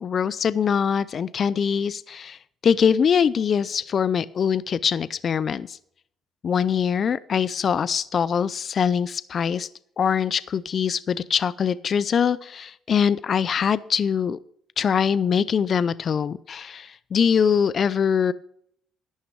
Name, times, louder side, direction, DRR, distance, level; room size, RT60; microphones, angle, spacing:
voice 1, 0.0-5.8 6.4-9.7 10.0-14.4 14.8-18.3, left 7 dB, 50° left, 17 dB, 0.4 m, -23 dB
11.0 x 9.4 x 4.7 m, 0.67 s
cardioid pair, 90°, 0 cm